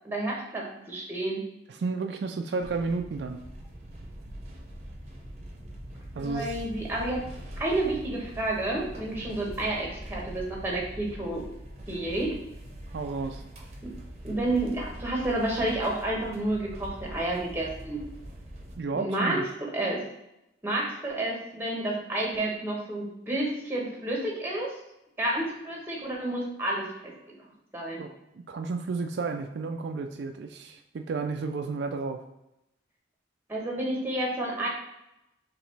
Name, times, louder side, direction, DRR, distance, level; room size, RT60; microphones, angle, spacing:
voice 1, 0.0-1.4 6.1-7.2 7.6-11.4 11.9-12.4 13.8-13.9 14.2-18.0 18.9-20.0 20.6-24.7 25.2-27.1 27.7-28.0 33.5-34.7, right 1 dB, 10° right, -2 dB, 1.0 m, -30 dB
voice 2, 1.7-3.4 6.2-6.6 12.9-13.4 18.8-19.4 27.9-28.1 28.3-32.2, right 4 dB, 70° right, 6 dB, 0.3 m, -32 dB
sound 1, 2.6-18.8, right 1 dB, 35° right, 0.8 m, -42 dB
5.0 x 3.2 x 3.2 m, 0.88 s
head